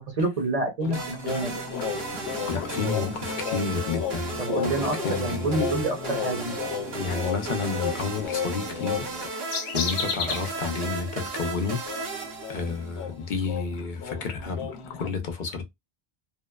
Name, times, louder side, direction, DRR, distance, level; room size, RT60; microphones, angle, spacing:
voice 1, 0.2-1.5 4.4-6.8, right 2 dB, 40° right, 0.8 m, -28 dB
sound 1, 0.8-10.5 10.8-11.0 11.3-15.1, left 7 dB, 85° left, 0.9 m, -33 dB
sound 2, 0.9-13.1, right 3 dB, 75° right, 1.0 m, -35 dB
voice 2, 2.5-4.4 4.6-5.8 6.9-9.1 9.7-11.9 12.5-15.6, left 5 dB, 55° left, 0.7 m, -30 dB
2.8 x 2.1 x 2.2 m
omnidirectional pair, 1.1 m